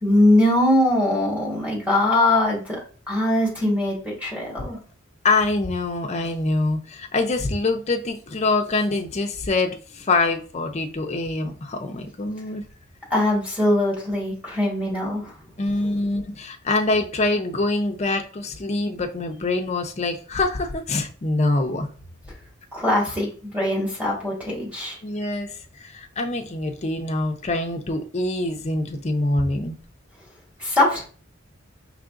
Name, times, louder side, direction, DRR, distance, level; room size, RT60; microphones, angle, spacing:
voice 1, 0.0-2.8 3.1-4.8 13.1-15.3 22.7-25.0 30.6-31.1, left 1 dB, 5° right, 1.7 m, -21 dB
voice 2, 5.2-12.6 15.6-21.9 25.0-25.5 25.8-29.8, left 2 dB, 35° left, 0.6 m, -24 dB
4.8 x 3.3 x 2.5 m
head